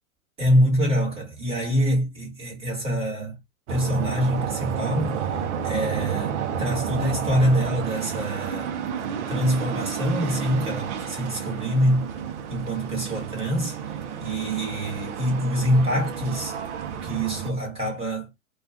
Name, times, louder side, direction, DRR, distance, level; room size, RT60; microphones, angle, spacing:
voice 1, 0.4-3.4 3.7-5.2 5.6-8.7 9.3-12.1 12.5-13.8 14.2-16.6 17.0-18.4, equal, 15° right, 1.3 m, -25 dB
sound 1, 3.7-17.5, right 7 dB, 55° right, 0.7 m, -31 dB
2.4 x 2.3 x 3.4 m
hypercardioid pair, 120°, 42 cm